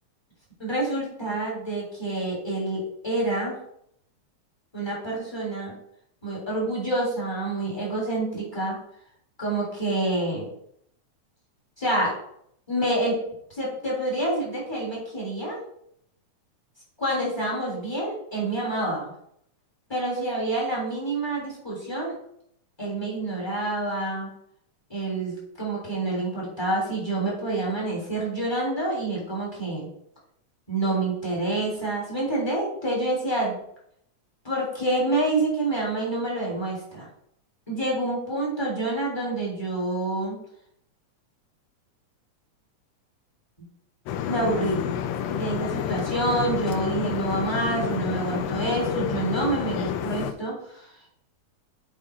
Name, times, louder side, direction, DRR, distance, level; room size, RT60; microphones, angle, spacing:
voice 1, 0.6-3.6 4.7-5.7 6.2-8.8 9.4-10.5 11.8-12.1 12.7-15.6 17.0-19.1 19.9-22.1 22.8-24.3 24.9-29.9 30.7-33.6 34.4-37.1 37.7-40.4 44.2-44.8 45.3-50.9, right 2 dB, 10° left, -4 dB, 3.1 m, -27 dB
sound 1, 44.1-50.3, left 10 dB, 80° left, 1.6 m, -29 dB
7.3 x 4.9 x 5.0 m, 0.71 s
omnidirectional pair, 3.4 m